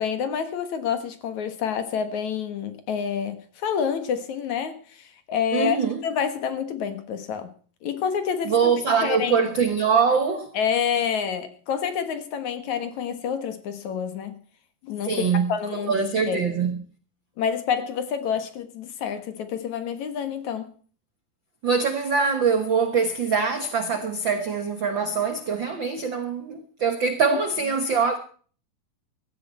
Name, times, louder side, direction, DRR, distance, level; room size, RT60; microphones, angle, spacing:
voice 1, 0.0-7.5 7.8-8.7 9.0-9.5 10.5-14.4 14.8-16.4 17.4-20.7 27.2-27.4, left 7 dB, 60° left, 2.6 m, -28 dB
voice 2, 5.5-6.0 8.5-10.5 15.0-15.5 15.8-16.8 21.6-28.2, right 5 dB, 70° right, 1.1 m, -23 dB
17.0 x 13.5 x 4.4 m
omnidirectional pair, 4.1 m